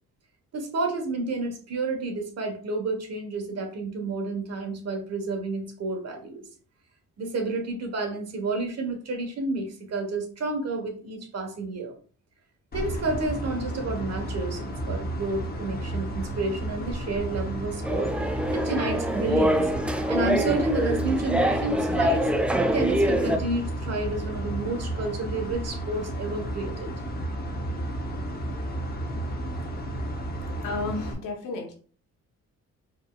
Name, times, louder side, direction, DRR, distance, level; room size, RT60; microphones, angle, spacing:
voice 1, 0.5-6.4 7.2-12.0 12.7-19.7 20.1-22.3 22.7-26.9, right 2 dB, 55° right, 4 dB, 1.3 m, -30 dB
sound 1, 12.7-31.1, right 1 dB, 30° left, 0.9 m, -32 dB
sound 2, 17.8-23.4, right 1 dB, 5° right, 0.3 m, -25 dB
voice 2, 30.6-31.7, left 3 dB, 85° left, 2 dB, 1.1 m, -32 dB
4.6 x 3.3 x 2.4 m, 0.43 s
cardioid pair, 90°, 30 cm